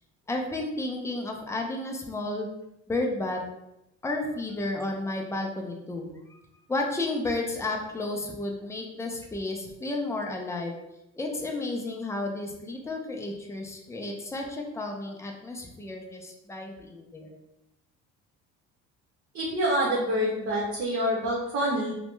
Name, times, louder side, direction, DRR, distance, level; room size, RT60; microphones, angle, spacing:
voice 1, 0.3-2.5 2.9-3.4 4.0-6.4 6.7-10.8 11.1-17.4, left 2 dB, 10° left, 1 dB, 0.5 m, -32 dB
voice 2, 19.3-21.9, equal, 45° right, -5 dB, 0.9 m, -26 dB
2.8 x 2.1 x 3.2 m, 0.88 s
supercardioid pair, 85°, 33 cm